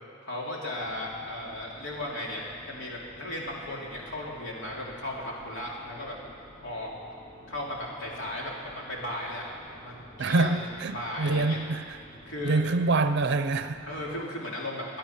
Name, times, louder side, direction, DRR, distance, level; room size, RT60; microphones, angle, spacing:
voice 1, 0.2-6.2 6.6-6.9 7.5-9.5 9.7-10.7 10.9-11.6 12.3-12.6 13.8-15.0, left 1 dB, 60° left, -3 dB, 3.0 m, -36 dB
sound 1, 0.7-14.2, equal, 30° left, 1.8 m, -51 dB
voice 2, 10.2-12.0 12.4-13.8, right 3 dB, 55° right, 10 dB, 0.6 m, -26 dB
23.0 x 9.2 x 5.8 m, 2.3 s
head